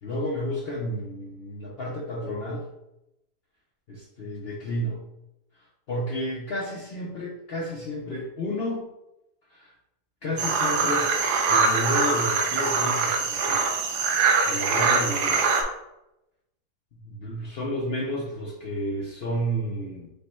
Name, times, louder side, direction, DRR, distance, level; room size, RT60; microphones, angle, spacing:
voice 1, 0.0-2.7 3.9-5.0 5.9-8.8 9.5-9.7 10.2-11.1 11.5-13.8 14.5-15.4 17.0-20.1, equal, 55° left, -2 dB, 0.6 m, -31 dB
sound 1, 10.4-15.6, right 4 dB, 85° right, 1.2 m, -23 dB
5.2 x 2.1 x 4.3 m, 0.89 s
omnidirectional pair, 1.7 m